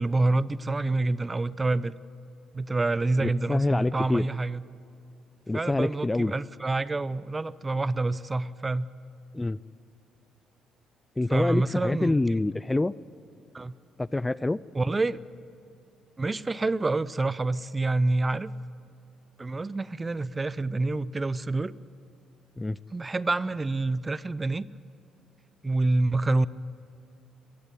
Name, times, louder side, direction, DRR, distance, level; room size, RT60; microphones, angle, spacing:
voice 1, 0.0-1.9 2.5-4.6 5.5-8.9 11.3-12.1 13.5-13.7 14.7-15.2 16.2-18.5 19.4-21.7 22.9-24.7 25.6-26.5, right 2 dB, 25° right, 19 dB, 0.7 m, -27 dB
voice 2, 3.2-4.3 5.5-6.3 9.3-9.6 11.2-12.9 14.0-14.6 22.6-22.8, left 2 dB, 15° left, 20 dB, 0.4 m, -26 dB
23.5 x 15.0 x 9.2 m, 2.8 s
hypercardioid pair, 50°, 0 cm